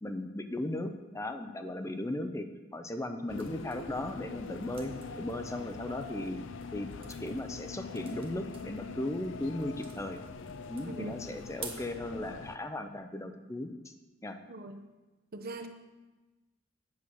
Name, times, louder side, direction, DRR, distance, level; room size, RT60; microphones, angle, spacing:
voice 1, 0.0-6.4 6.7-6.9 7.2-10.2 10.7-13.9 14.2-14.4, left 1 dB, 15° left, 7 dB, 0.6 m, -37 dB
sound 1, 3.3-12.6, left 5 dB, 70° left, 0.5 m, -43 dB
sound 2, 3.3-11.9, right 5 dB, 30° right, 1.4 m, -52 dB
voice 2, 10.8-11.2 14.5-14.9 15.3-15.7, right 1 dB, 50° right, 8 dB, 0.9 m, -42 dB
8.6 x 6.2 x 7.8 m, 1.2 s
head